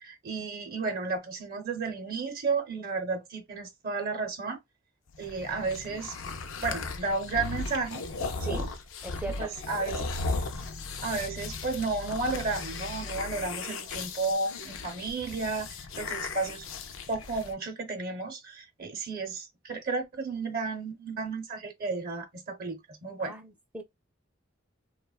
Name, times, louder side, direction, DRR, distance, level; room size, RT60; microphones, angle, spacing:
voice 1, 0.0-4.6 5.2-6.2 6.6-8.1 8.5-8.7 9.4-10.0 11.0-15.7 16.0-16.6 17.1-23.4, right 4 dB, 50° right, 0.6 m, -33 dB
sound 1, 5.1-17.5, left 3 dB, 75° left, 0.5 m, -36 dB
voice 2, 9.0-9.5 23.2-23.8, right 3 dB, 5° right, 0.4 m, -38 dB
2.9 x 2.2 x 2.2 m
head